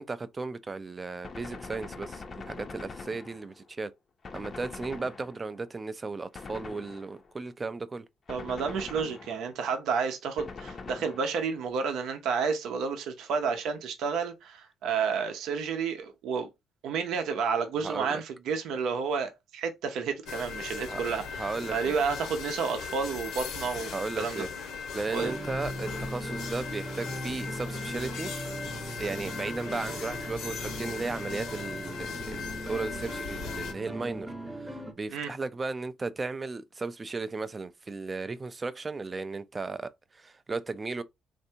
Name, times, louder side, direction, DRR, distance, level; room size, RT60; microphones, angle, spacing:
voice 1, 0.0-3.9 4.3-8.0 17.8-18.2 20.9-21.0 21.3-22.0 23.9-24.5 24.9-28.3 29.0-41.0, right 3 dB, 25° right, 0.4 m, -35 dB
Gunshot gunfire, 1.2-3.7 4.2-5.7 6.3-7.4 8.3-9.7 10.4-11.6, left 4 dB, 40° left, 0.5 m, -43 dB
voice 2, 8.3-16.5 16.8-24.4 25.1-25.3 35.1-35.3, right 5 dB, 75° right, 0.7 m, -31 dB
sound 1, 20.2-33.7, left 5 dB, 85° left, 1.1 m, -38 dB
sound 2, 25.2-34.9, right 1 dB, 10° right, 0.7 m, -39 dB
3.3 x 2.6 x 2.7 m
cardioid pair, 95°, 0 cm